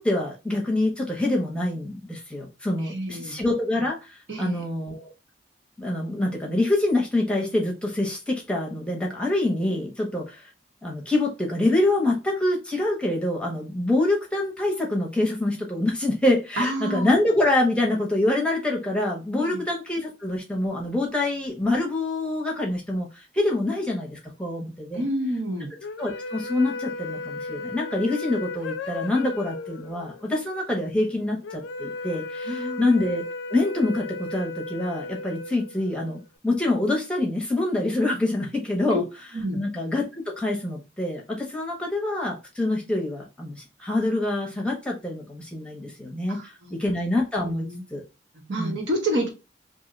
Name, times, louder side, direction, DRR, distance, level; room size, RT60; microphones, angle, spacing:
voice 1, 0.0-5.1 5.8-10.5 10.8-25.0 26.0-39.0 39.5-48.0 48.6-48.8, left 2 dB, 5° left, -1 dB, 0.6 m, -26 dB
voice 2, 2.8-3.4 4.3-4.6 16.6-17.1 19.4-19.6 24.9-25.7 32.5-32.9 38.9-39.0 39.3-39.6 46.3-46.8 47.4-47.8 48.3-49.3, right 1 dB, 80° right, 1 dB, 0.9 m, -29 dB
sound 1, 25.8-36.2, left 3 dB, 85° left, 0.4 m, -35 dB
2.6 x 2.1 x 3.7 m, 0.29 s
head